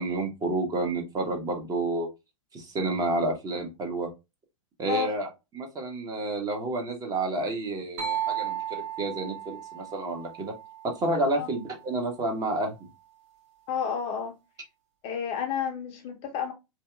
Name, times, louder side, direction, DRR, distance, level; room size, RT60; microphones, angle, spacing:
voice 1, 0.0-2.1 2.5-4.1 4.8-5.3 5.5-10.5 10.8-12.7, right 2 dB, 20° right, 0.7 m, -30 dB
sound 1, 8.0-11.7, right 10 dB, 50° right, 0.9 m, -35 dB
voice 2, 13.7-14.3 15.0-16.5, left 7 dB, 30° left, 0.5 m, -30 dB
2.7 x 2.2 x 2.2 m
hypercardioid pair, 110°, 18 cm